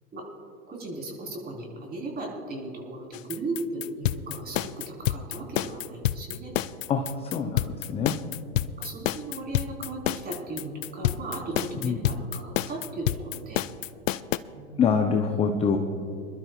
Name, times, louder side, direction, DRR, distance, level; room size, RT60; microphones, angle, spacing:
voice 1, 0.7-6.5 7.4-7.7 8.8-13.6 14.5-14.8, right 2 dB, 20° right, -1 dB, 3.9 m, -36 dB
sound 1, 3.1-14.4, left 13 dB, 60° left, 0.6 m, -28 dB
voice 2, 6.9-7.6 7.9-8.2 11.8-12.0 14.8-15.8, left 6 dB, 15° left, 5 dB, 0.6 m, -24 dB
26.0 x 12.0 x 2.4 m, 2.4 s
hypercardioid pair, 115°, 44 cm